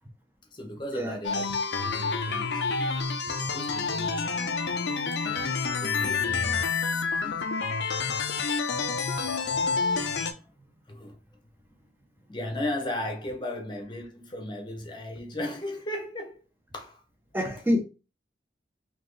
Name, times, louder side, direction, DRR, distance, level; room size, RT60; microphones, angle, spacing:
voice 1, 0.5-2.6 3.3-4.6 5.2-6.8 7.1-7.4 7.7-8.5 9.2-10.5 10.9-11.2 12.3-16.4 16.7-17.0, left 1 dB, 25° left, 0.9 m, -37 dB
sound 1, 1.2-10.3, left 4 dB, 75° left, 0.6 m, -28 dB
voice 2, 17.3-17.8, left 1 dB, 10° right, 0.8 m, -28 dB
4.1 x 3.0 x 3.2 m
head